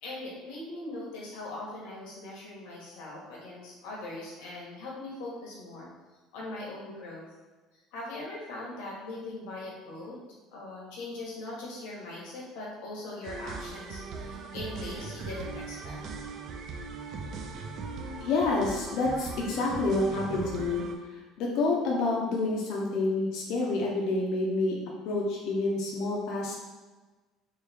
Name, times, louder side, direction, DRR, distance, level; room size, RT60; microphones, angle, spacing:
voice 1, 0.0-5.9 6.3-7.3 7.9-10.2 10.5-16.0, left 2 dB, 80° left, -4 dB, 1.2 m, -40 dB
sound 1, 13.2-20.9, right 4 dB, 45° right, 0.4 m, -39 dB
voice 2, 17.9-24.8 25.0-26.7, left 2 dB, 55° left, -2 dB, 0.6 m, -28 dB
3.3 x 3.1 x 3.4 m, 1.3 s
cardioid pair, 170°, 0 cm